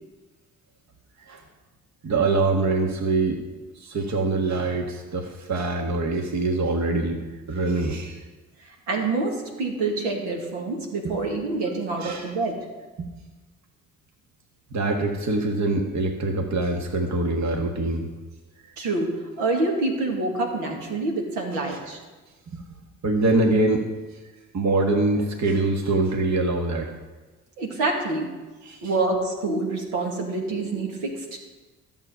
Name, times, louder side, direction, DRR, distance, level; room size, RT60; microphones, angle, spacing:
voice 1, 2.0-3.4 3.8-7.2 7.5-8.2 12.0-12.3 13.0-13.1 14.7-18.1 21.5-21.8 22.5-22.6 23.0-23.9 24.1-24.2 24.5-26.9 28.6-28.9, right 2 dB, 45° right, 3 dB, 1.6 m, -24 dB
voice 2, 8.6-12.7 18.8-22.0 27.6-28.3 28.8-31.4, right 3 dB, 70° right, 1 dB, 2.4 m, -27 dB
13.5 x 7.3 x 5.7 m, 1.2 s
hypercardioid pair, 50°, 41 cm